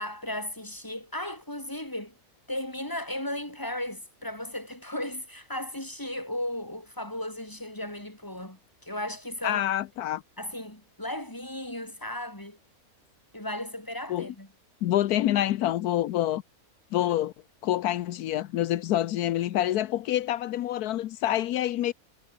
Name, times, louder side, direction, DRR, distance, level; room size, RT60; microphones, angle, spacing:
voice 1, 0.0-2.1 2.5-9.7 10.4-12.6 13.3-14.5, left 1 dB, 15° left, 4.4 m, -35 dB
voice 2, 9.4-10.2 14.1-14.3 14.8-16.4 16.9-17.3 17.6-21.9, left 13 dB, 80° left, 1.2 m, -27 dB
omnidirectional pair, 1.6 m